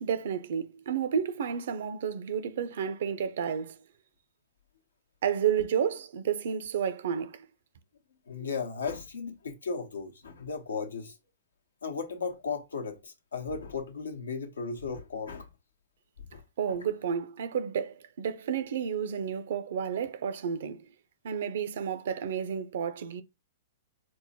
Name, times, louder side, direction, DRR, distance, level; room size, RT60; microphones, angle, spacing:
voice 1, 0.0-3.8 5.2-7.5 16.6-20.9 21.2-23.2, right 8 dB, 65° right, 0.5 m, -31 dB
voice 2, 8.3-11.2 11.8-15.5 16.3-16.4, left 5 dB, 85° left, 0.8 m, -35 dB
4.5 x 2.1 x 2.7 m
hypercardioid pair, 120°, 0 cm